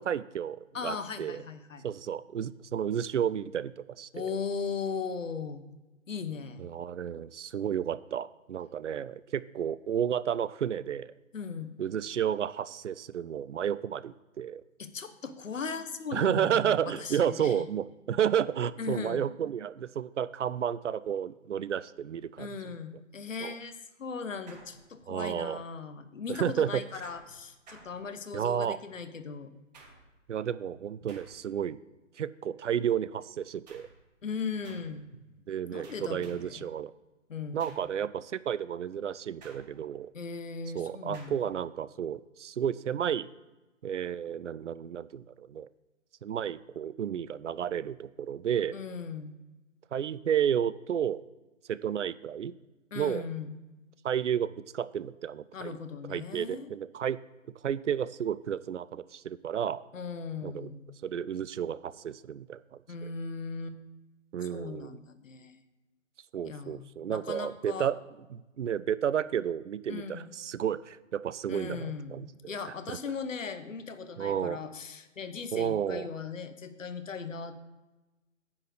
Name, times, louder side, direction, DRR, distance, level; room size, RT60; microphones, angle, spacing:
voice 1, 0.1-0.6 0.8-1.4 1.8-4.3 6.6-11.1 11.8-14.6 16.1-22.5 23.4-23.6 25.1-25.6 26.3-26.8 28.3-28.8 30.3-31.8 32.2-33.9 35.5-36.9 37.5-40.1 40.7-43.3 43.8-45.7 46.2-48.7 49.9-51.2 51.7-52.5 53.0-53.3 54.0-55.8 56.1-57.2 57.6-59.8 60.4-60.7 61.0-63.1 64.3-65.0 66.3-68.0 68.3-73.0 74.2-74.6 75.5-76.1, right 9 dB, 65° right, 18 dB, 0.5 m, -32 dB
voice 2, 0.7-1.9 4.1-5.6 6.1-6.6 11.3-11.7 14.8-17.7 18.8-19.2 22.4-29.5 34.2-35.1 35.7-36.7 37.3-37.7 40.1-41.4 48.7-49.3 52.9-53.6 55.5-56.7 59.9-60.9 62.9-63.8 64.4-65.6 66.4-67.9 69.9-70.3 71.5-77.6, left 5 dB, 75° left, 11 dB, 1.0 m, -38 dB
sound 1, 24.5-25.3 27.0-28.5 29.7-30.3 31.1-31.7 33.7-34.1 34.6-35.1 35.8-36.6 37.6-38.0 39.4-40.0 41.1-41.6, right 3 dB, 30° right, 1.5 m, -55 dB
9.8 x 4.3 x 6.5 m, 1.1 s
figure-of-eight pair, 145°, 39 cm